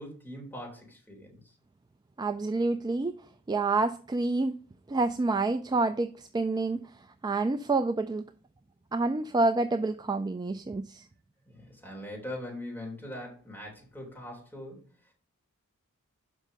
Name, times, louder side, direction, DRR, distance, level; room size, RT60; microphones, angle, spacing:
voice 1, 0.0-1.4 11.5-14.9, left 1 dB, 10° left, 3.6 m, -41 dB
voice 2, 2.2-3.2 3.5-4.6 4.9-6.9 7.2-8.2 8.9-11.0, right 3 dB, 20° right, 0.3 m, -28 dB
6.2 x 5.4 x 6.6 m
head